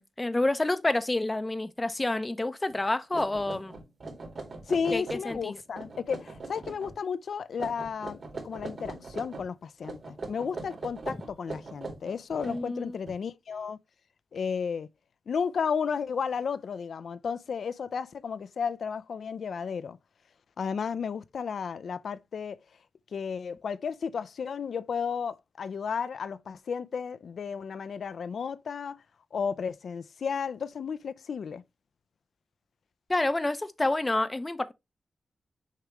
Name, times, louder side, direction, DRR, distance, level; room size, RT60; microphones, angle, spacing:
voice 1, 0.0-3.7 4.9-5.5 12.4-12.9 33.1-34.7, left 2 dB, 20° left, 0.6 m, -28 dB
sound 1, 2.7-2.8 3.1-5.4 5.7-6.9 7.5-9.5 9.8-13.1, right 3 dB, 50° right, 2.3 m, -40 dB
voice 2, 4.7-8.2 8.4-13.8 14.3-14.9 15.3-20.0 20.6-22.6 23.1-29.0 29.3-31.6, left 6 dB, 70° left, 0.5 m, -33 dB
6.6 x 5.0 x 3.0 m
wide cardioid pair, 125°, 0 cm